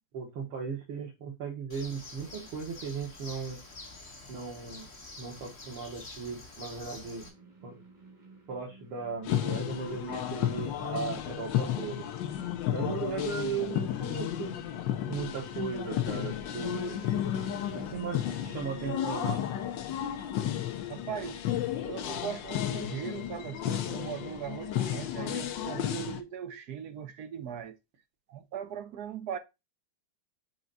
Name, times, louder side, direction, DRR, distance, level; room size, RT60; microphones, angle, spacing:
voice 1, 0.1-3.6 4.3-4.9 5.2-7.3 7.6-7.8 8.5-12.1 12.7-14.5 15.1-17.2 17.7-19.4, right 5 dB, 90° right, 2.4 m, -37 dB
Bird, 1.7-7.3, left 2 dB, 35° left, 1.8 m, -47 dB
sound 1, 6.9-21.1, equal, 20° right, 2.1 m, -52 dB
sound 2, 9.2-26.2, left 11 dB, 70° left, 1.4 m, -33 dB
voice 2, 20.9-21.4 21.8-27.8 28.3-29.4, right 9 dB, 65° right, 1.0 m, -39 dB
6.0 x 4.5 x 3.9 m
omnidirectional pair, 2.3 m